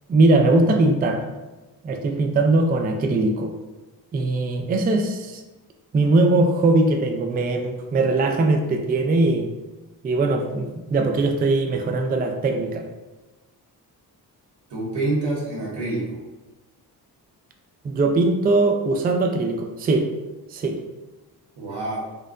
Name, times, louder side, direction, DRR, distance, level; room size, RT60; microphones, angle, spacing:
voice 1, 0.1-1.2 1.8-3.5 4.1-5.4 5.9-9.5 10.0-12.9 17.8-20.1 20.5-20.8, right 2 dB, 25° right, 4 dB, 0.3 m, -20 dB
voice 2, 14.7-16.2 21.6-22.0, right 2 dB, 85° right, -4 dB, 1.5 m, -27 dB
4.3 x 3.7 x 2.4 m, 1.1 s
cardioid pair, 110°, 40 cm